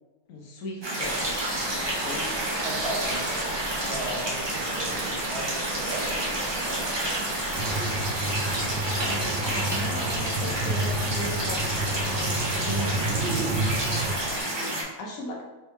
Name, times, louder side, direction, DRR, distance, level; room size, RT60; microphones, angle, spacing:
voice 1, 0.3-1.3 1.7-2.4 8.8-13.2 13.8-15.4, left 1 dB, 80° left, -1 dB, 1.1 m, -38 dB
sound 1, 0.8-14.8, right 1 dB, 30° right, 0.5 m, -30 dB
sound 2, 1.0-14.4, right 1 dB, 75° right, 1.7 m, -36 dB
voice 2, 2.6-3.3 3.8-6.8, right 1 dB, 55° right, -2 dB, 1.1 m, -36 dB
sound 3, 7.5-14.1, right 1 dB, 90° right, 0.4 m, -30 dB
3.5 x 3.2 x 3.1 m, 1.2 s
omnidirectional pair, 1.4 m